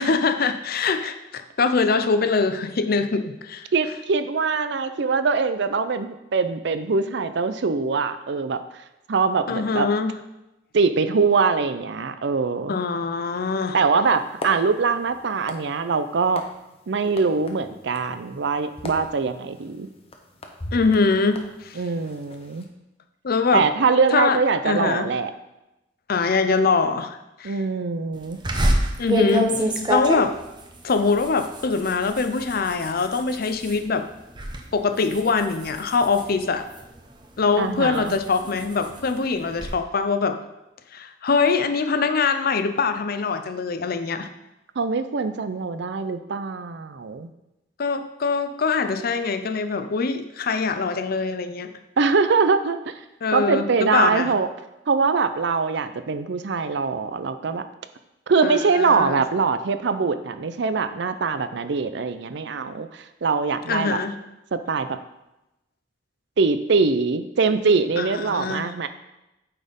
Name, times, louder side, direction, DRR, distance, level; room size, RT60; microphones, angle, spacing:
voice 1, 0.0-3.7 9.5-10.1 12.7-13.8 20.7-21.8 23.2-23.7 24.1-24.4 24.6-25.1 26.1-27.6 29.0-30.3 30.8-34.1 34.7-36.6 37.4-40.4 40.9-44.3 47.8-51.7 53.2-54.3 58.4-59.2 63.7-64.2 68.0-68.7, left 4 dB, 55° left, 9 dB, 0.6 m, -23 dB
voice 2, 3.7-8.8 9.1-9.9 10.7-12.8 13.7-16.4 16.9-19.9 21.8-22.7 23.5-25.3 27.4-28.4 37.6-38.2 44.8-47.3 52.0-52.9 53.3-54.5 54.9-57.6 58.3-64.0 64.5-65.0 66.4-68.9, right 4 dB, 70° right, 10 dB, 0.5 m, -23 dB
sound 1, 14.0-22.6, left 1 dB, 35° left, 0.9 m, -41 dB
sound 2, 28.4-33.8 34.2-34.6 35.0-37.0 37.5-39.7, right 1 dB, 25° right, 0.9 m, -27 dB
8.8 x 4.3 x 5.2 m, 0.93 s
head